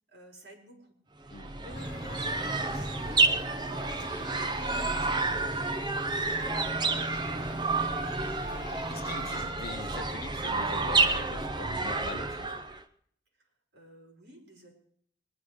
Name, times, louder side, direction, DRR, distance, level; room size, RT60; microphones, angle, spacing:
voice 1, 0.1-3.7 4.0-5.5 6.1-7.8 9.0-9.6 13.4-14.8, equal, 65° right, 4.3 m, -52 dB
sound 1, 1.3-12.8, right 3 dB, 25° right, 0.7 m, -30 dB
sound 2, 1.7-9.5, left 2 dB, 30° left, 4.0 m, -48 dB
voice 2, 8.9-12.5, left 4 dB, 55° left, 0.7 m, -42 dB
20.5 x 10.5 x 4.8 m
head